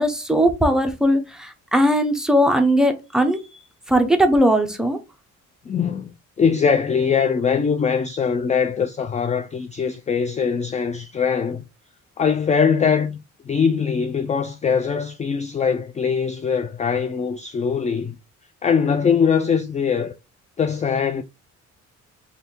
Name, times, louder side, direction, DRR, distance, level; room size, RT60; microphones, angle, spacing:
voice 1, 0.0-3.4 3.9-5.0, equal, ahead, 0.9 m, -19 dB
voice 2, 5.7-11.6 12.2-13.2 13.5-18.2 18.6-20.1 20.6-21.2, left 6 dB, 25° left, 0.4 m, -22 dB
3.3 x 2.7 x 4.3 m
cardioid pair, 90°, 30 cm